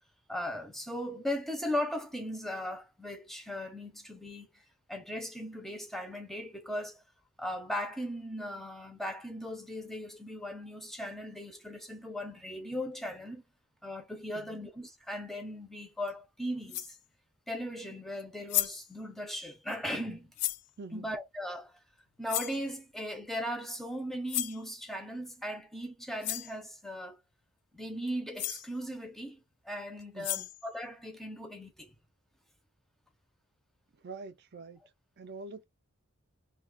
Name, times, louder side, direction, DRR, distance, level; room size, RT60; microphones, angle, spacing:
voice 1, 0.3-4.5 4.9-7.0 7.4-13.4 13.8-17.0 17.5-20.3 20.9-21.8 22.2-27.2 27.7-29.4 29.6-31.9, equal, ahead, 0.5 m, -38 dB
sound 1, 16.1-16.2 16.7-17.0 18.2-18.3 18.5-18.9 20.4-20.7 22.3-22.6 24.3-24.6 25.8-25.9 26.2-26.5 28.1-28.2 28.4-28.7 30.0-30.7, left 14 dB, 85° left, 0.4 m, -34 dB
voice 2, 20.8-21.1 30.1-30.5 34.0-34.8 35.2-35.6, right 3 dB, 50° right, 0.5 m, -45 dB
2.4 x 2.3 x 3.8 m
head